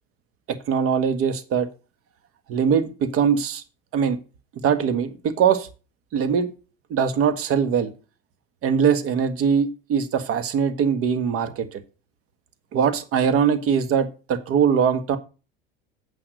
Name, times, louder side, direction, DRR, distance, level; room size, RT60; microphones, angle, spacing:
voice 1, 0.5-1.7 2.5-3.6 3.9-4.2 4.6-5.7 6.1-6.5 6.9-7.9 8.6-11.8 12.7-15.2, right 7 dB, 50° right, 10 dB, 1.6 m, -21 dB
9.0 x 5.9 x 6.5 m, 0.33 s
hypercardioid pair, 85°, 29 cm